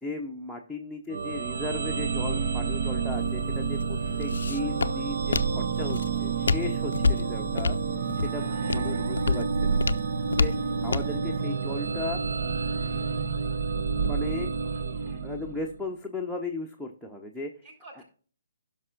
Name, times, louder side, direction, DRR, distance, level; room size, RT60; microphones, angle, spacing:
voice 1, 0.0-7.8 8.2-9.8 10.3-10.5 10.8-12.2 14.1-14.5 15.2-17.5, left 2 dB, ahead, 2 dB, 0.8 m, -36 dB
sound 1, 1.1-15.8, right 5 dB, 50° right, 0.7 m, -29 dB
Walk footsteps, 3.1-11.2, left 4 dB, 65° left, 0.4 m, -30 dB
voice 2, 8.4-8.8 14.6-15.2 17.6-18.0, right 2 dB, 35° right, 0 dB, 3.9 m, -52 dB
16.5 x 6.0 x 2.5 m, 0.43 s
figure-of-eight pair, 135°, 0 cm